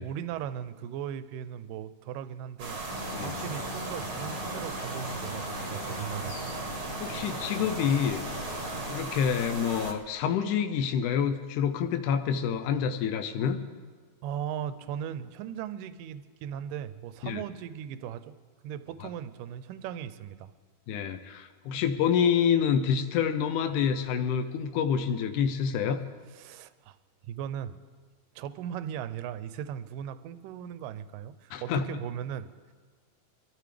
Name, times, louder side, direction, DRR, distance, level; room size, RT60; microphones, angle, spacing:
voice 1, 0.0-2.8 3.2-6.5 14.2-18.4 18.6-20.5 21.7-21.8 26.3-27.0 27.3-27.8 28.4-32.7, right 9 dB, 80° right, 12 dB, 2.1 m, -38 dB
sound 1, 2.6-9.9, right 3 dB, 50° right, 1.2 m, -37 dB
sound 2, 2.9-9.0, left 1 dB, 35° left, 1.7 m, -39 dB
voice 2, 7.0-8.3 8.9-13.6 17.2-17.4 19.0-19.1 20.9-26.0 31.5-31.8, left 7 dB, 80° left, 7 dB, 1.9 m, -27 dB
25.0 x 14.0 x 3.3 m, 1.5 s
omnidirectional pair, 4.3 m